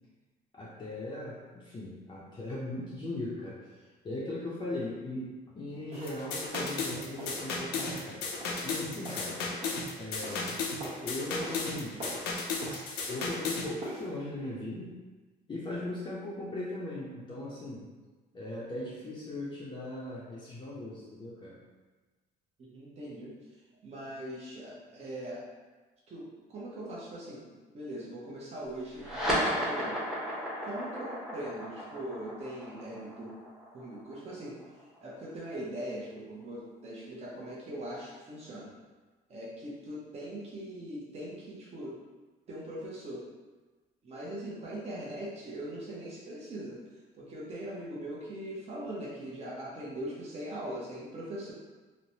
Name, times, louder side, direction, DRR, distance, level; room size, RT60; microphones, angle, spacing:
voice 1, 0.5-3.7 4.0-8.2 8.6-9.4 10.0-10.6 11.0-12.0 13.1-14.9 15.5-17.9 18.3-21.6, left 1 dB, 25° left, -6 dB, 0.5 m, -38 dB
sound 1, 5.9-6.2 6.5-6.8 7.2-7.5 7.8-8.1 8.4-9.9 10.2-10.5 10.8-11.1 11.4-11.7 12.0-12.3 12.6-13.5 13.8-14.1, right 1 dB, 70° right, 1.1 m, -43 dB
sound 2, 6.1-13.7, left 4 dB, 85° left, 0.5 m, -34 dB
voice 2, 22.6-23.3 23.8-25.4 26.1-27.5 27.7-30.0 30.6-33.3 33.7-34.6 35.0-38.7 39.3-42.0 42.5-43.2 44.0-46.8 47.2-51.5, right 1 dB, 40° right, -6 dB, 0.7 m, -41 dB
sound 3, 28.9-35.8, equal, 5° right, 0.8 m, -34 dB
3.1 x 2.1 x 2.7 m, 1.3 s
cardioid pair, 110°, 17 cm